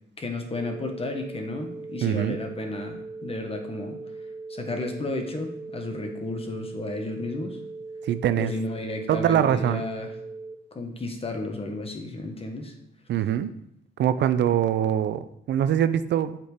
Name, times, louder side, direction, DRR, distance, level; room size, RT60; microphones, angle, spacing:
voice 1, 0.2-4.0 4.5-7.6 8.4-10.1 10.7-12.7, left 2 dB, 30° left, 4 dB, 1.4 m, -33 dB
sound 1, 0.5-10.5, right 3 dB, 15° right, 1.2 m, -39 dB
voice 2, 2.0-2.4 8.0-8.5 9.1-9.8 13.1-13.5 14.0-16.4, right 10 dB, 60° right, 12 dB, 0.5 m, -23 dB
8.0 x 4.4 x 5.1 m, 0.77 s
cardioid pair, 90°, 20 cm